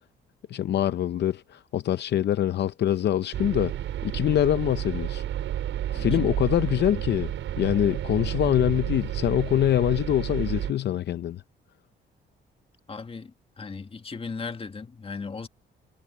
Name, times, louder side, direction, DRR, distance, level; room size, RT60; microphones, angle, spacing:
voice 1, 0.5-3.7 4.0-5.2 5.9-7.3 7.6-11.4, left 11 dB, 60° left, 0.6 m, -24 dB
sound 1, 3.3-10.7, right 11 dB, 75° right, 5.2 m, -31 dB
voice 2, 5.9-6.3 12.9-15.5, left 4 dB, 30° left, 1.9 m, -37 dB
cardioid pair, 90°, 20 cm